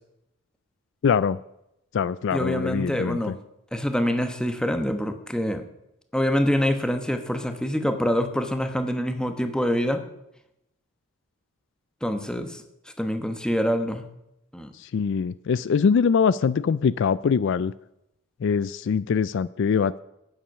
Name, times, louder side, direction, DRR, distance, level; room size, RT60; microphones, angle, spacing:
voice 1, 1.0-1.4 1.9-3.3 14.8-17.7 18.4-20.0, left 6 dB, 60° left, 18 dB, 0.3 m, -23 dB
voice 2, 2.3-3.3 3.7-5.6 6.1-10.0 12.0-12.6 13.0-14.0 14.5-14.7, equal, 5° left, 7 dB, 1.0 m, -25 dB
11.5 x 9.0 x 6.3 m, 0.83 s
head